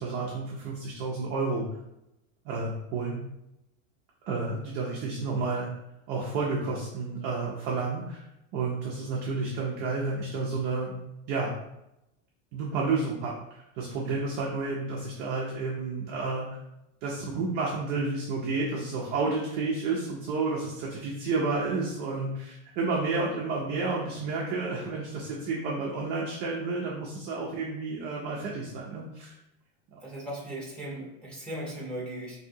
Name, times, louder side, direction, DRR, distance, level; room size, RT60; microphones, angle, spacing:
voice 1, 0.0-1.7 2.4-3.2 4.2-5.7 6.1-8.2 8.5-11.0 11.3-11.5 12.5-16.5 17.0-29.3 29.9-30.0, right 3 dB, 30° right, -3 dB, 0.3 m, -31 dB
voice 2, 30.0-32.4, right 1 dB, ahead, -3 dB, 0.7 m, -37 dB
4.5 x 2.6 x 2.6 m, 0.89 s
supercardioid pair, 160°, 39 cm